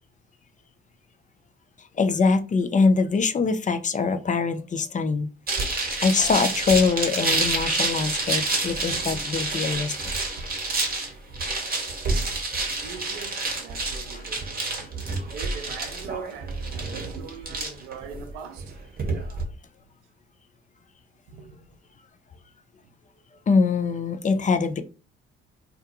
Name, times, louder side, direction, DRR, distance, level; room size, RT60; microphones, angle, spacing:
voice 1, 1.8-5.3 6.0-9.9 23.5-24.8, left 4 dB, 25° left, 0.4 m, -23 dB
sound 1, 5.5-19.4, right 3 dB, 30° right, 1.0 m, -28 dB
voice 2, 12.8-14.9 15.3-18.8 21.3-21.6, right 6 dB, 85° right, 0.5 m, -41 dB
2.3 x 2.2 x 2.9 m
hypercardioid pair, 55°, 30 cm